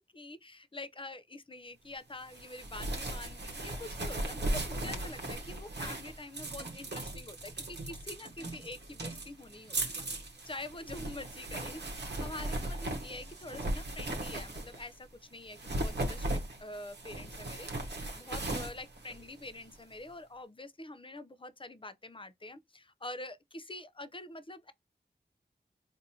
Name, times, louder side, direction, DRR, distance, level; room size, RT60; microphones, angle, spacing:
voice 1, 0.0-10.1 10.4-24.7, left 2 dB, 30° left, 0.5 m, -46 dB
sound 1, 2.3-14.9 15.5-19.8, right 1 dB, 65° right, 0.9 m, -38 dB
4.1 x 2.6 x 2.7 m
cardioid pair, 40°, 18 cm